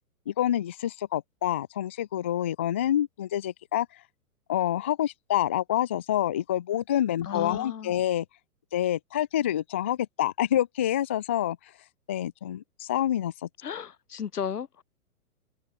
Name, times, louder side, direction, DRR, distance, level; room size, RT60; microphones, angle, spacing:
voice 1, 0.3-3.9 4.5-8.3 8.7-11.6 12.1-13.5, left 11 dB, 10° left, 0.5 m, -27 dB
voice 2, 7.2-7.9 13.6-14.8, left 8 dB, 80° left, 3.7 m, -34 dB
hypercardioid pair, 160°, 45 cm